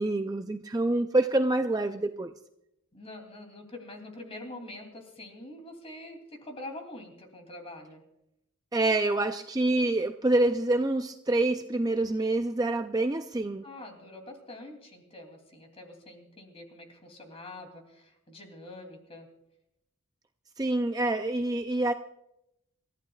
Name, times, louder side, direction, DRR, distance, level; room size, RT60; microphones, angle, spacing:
voice 1, 0.0-2.3 8.7-13.6 20.6-21.9, right 2 dB, 20° right, 7 dB, 0.4 m, -26 dB
voice 2, 2.9-8.0 13.6-19.3, left 1 dB, 30° left, 3 dB, 2.9 m, -45 dB
28.0 x 14.5 x 2.4 m, 0.82 s
head